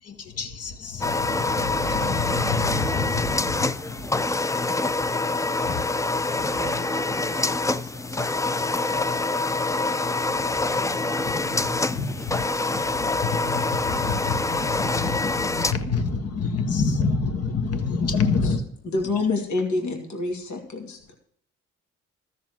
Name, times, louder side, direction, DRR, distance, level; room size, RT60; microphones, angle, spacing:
voice 1, 0.0-6.9 9.7-18.8 19.0-19.3, left 4 dB, 55° left, 1.7 m, -29 dB
sound 1, 1.0-15.7, left 3 dB, 10° left, 0.4 m, -25 dB
voice 2, 6.6-8.3 12.2-12.3, right 4 dB, 25° right, 1.1 m, -43 dB
voice 3, 18.9-21.2, left 3 dB, 70° left, 2.6 m, -27 dB
13.5 x 6.7 x 6.3 m
cardioid pair, 90°, 30 cm